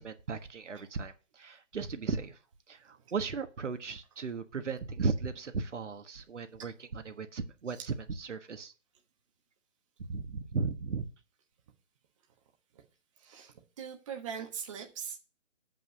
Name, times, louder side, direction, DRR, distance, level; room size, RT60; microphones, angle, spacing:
voice 1, 0.0-2.4 2.7-8.7 10.1-11.1, right 4 dB, 65° right, 1.5 m, -36 dB
voice 2, 13.2-15.2, right 7 dB, 25° right, 1.2 m, -41 dB
7.7 x 5.7 x 6.6 m
hypercardioid pair, 160°, 39 cm